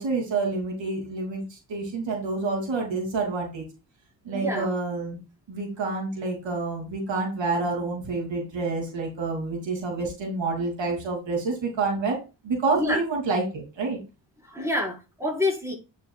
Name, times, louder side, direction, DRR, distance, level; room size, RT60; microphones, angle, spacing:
voice 1, 0.0-3.6 4.2-5.2 5.5-12.2 12.4-14.0, right 3 dB, 75° right, 1 dB, 3.0 m, -28 dB
voice 2, 4.3-4.7 12.7-13.0 14.4-15.8, left 1 dB, 5° right, -2 dB, 5.1 m, -27 dB
9.4 x 6.6 x 2.4 m, 0.29 s
cardioid pair, 80°, 45 cm